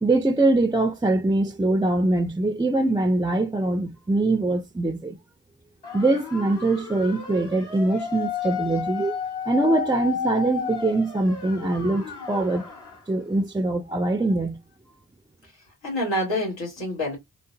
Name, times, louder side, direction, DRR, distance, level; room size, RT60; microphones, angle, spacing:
voice 1, 0.0-5.2 5.9-9.2 9.5-12.7 13.1-14.6, right 2 dB, 10° right, 0.3 m, -23 dB
sound 1, 5.8-13.0, left 6 dB, 65° left, 1.5 m, -32 dB
voice 2, 15.4-17.2, left 1 dB, 90° left, 1.7 m, -28 dB
3.8 x 2.1 x 2.6 m
cardioid pair, 50°, 43 cm